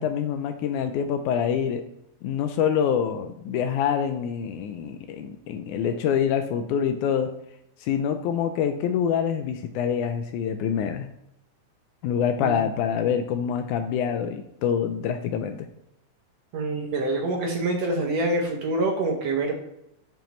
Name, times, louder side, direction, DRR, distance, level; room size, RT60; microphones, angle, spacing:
voice 1, 0.0-1.8 2.2-7.3 7.8-11.1 12.0-15.7, left 8 dB, 80° left, 8 dB, 1.9 m, -26 dB
voice 2, 16.5-19.6, right 2 dB, 65° right, 1 dB, 1.8 m, -26 dB
8.9 x 5.7 x 3.1 m, 0.81 s
omnidirectional pair, 3.8 m